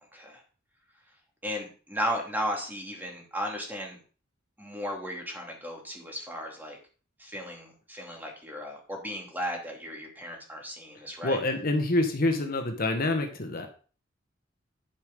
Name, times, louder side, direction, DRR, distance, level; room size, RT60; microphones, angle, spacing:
voice 1, 1.4-4.0 4.6-6.8 7.2-11.4, equal, 10° right, 0 dB, 2.6 m, -35 dB
voice 2, 11.2-13.7, left 2 dB, 50° left, 5 dB, 1.3 m, -27 dB
11.5 x 5.2 x 5.3 m, 0.39 s
head